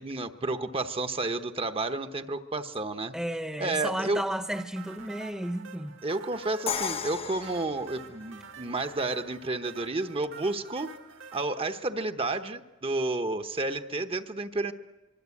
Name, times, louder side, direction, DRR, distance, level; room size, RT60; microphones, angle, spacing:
voice 1, 0.0-3.1 3.6-4.2 6.0-10.9 11.3-14.7, right 2 dB, 30° right, 1.0 m, -31 dB
voice 2, 3.1-6.0, right 1 dB, 5° right, 1.0 m, -33 dB
sound 1, 4.5-11.4, right 6 dB, 70° right, 2.0 m, -48 dB
Crash cymbal, 6.7-8.6, left 7 dB, 30° left, 0.8 m, -34 dB
24.5 x 24.0 x 8.5 m
head